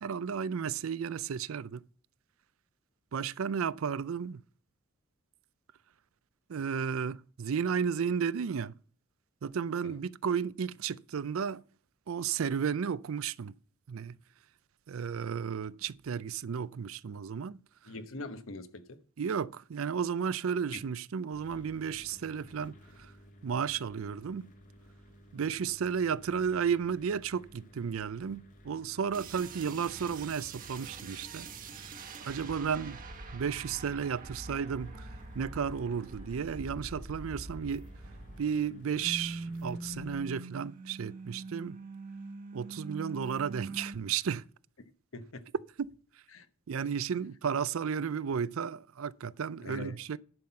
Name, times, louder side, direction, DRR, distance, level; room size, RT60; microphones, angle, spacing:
voice 1, 0.0-1.8 3.1-4.4 6.5-8.7 9.4-11.6 12.1-13.5 13.9-14.2 14.9-17.6 19.2-23.1 23.4-24.5 25.3-31.5 32.2-33.0 33.3-35.1 35.3-37.9 38.4-41.8 42.5-44.4 45.8-45.9 46.7-50.2, right 7 dB, 70° right, 0.4 m, -33 dB
voice 2, 17.8-19.0 45.1-45.4 46.3-46.5 49.6-50.0, left 2 dB, 70° left, 1.0 m, -43 dB
sound 1, 21.3-40.2, equal, 40° left, 1.5 m, -56 dB
sound 2, 29.1-38.7 38.9-44.0, right 2 dB, 40° right, 1.1 m, -44 dB
11.0 x 5.8 x 5.7 m
head